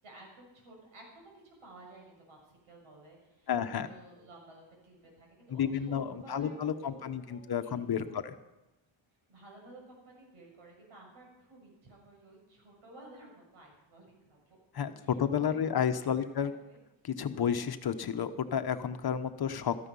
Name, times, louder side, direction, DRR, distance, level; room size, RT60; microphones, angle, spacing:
voice 1, 0.0-3.5 3.8-8.3 9.3-14.6 15.0-16.8, right 2 dB, 90° right, 0 dB, 6.9 m, -54 dB
voice 2, 3.5-3.9 5.5-8.3 14.7-16.5 17.0-19.8, left 8 dB, 50° left, 9 dB, 1.1 m, -31 dB
16.5 x 14.0 x 5.6 m, 0.98 s
cardioid pair, 120°, 48 cm